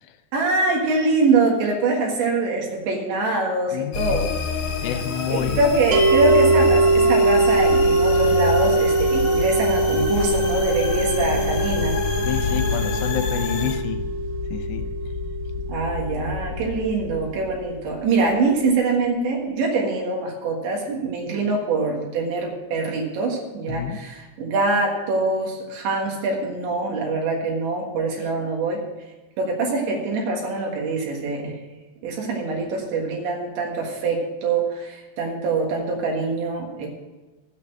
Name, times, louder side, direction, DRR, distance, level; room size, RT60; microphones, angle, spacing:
voice 1, 0.3-4.3 5.3-12.0 15.7-28.8 29.4-31.5 32.0-36.9, right 3 dB, 80° right, 0 dB, 3.9 m, -24 dB
voice 2, 3.7-4.2 4.8-5.6 12.2-14.0 14.5-14.8 23.7-24.0, left 8 dB, 80° left, 7 dB, 3.0 m, -28 dB
sound 1, 3.9-13.7, left 6 dB, 50° left, 3.3 m, -27 dB
sound 2, 5.4-18.7, left 6 dB, 40° right, 2.0 m, -33 dB
sound 3, 5.9-17.1, right 3 dB, 60° right, 2.1 m, -22 dB
13.0 x 6.7 x 7.5 m, 1.2 s
omnidirectional pair, 5.2 m